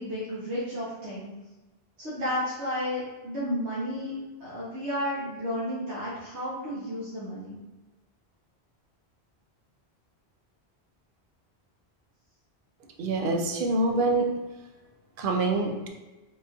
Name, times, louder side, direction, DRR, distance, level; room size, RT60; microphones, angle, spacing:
voice 1, 0.0-1.3 2.0-7.6, equal, 85° right, -9 dB, 1.3 m, -32 dB
voice 2, 13.0-14.3 15.2-15.9, right 2 dB, 60° right, 3 dB, 0.7 m, -25 dB
4.7 x 2.4 x 2.7 m, 1.1 s
omnidirectional pair, 1.1 m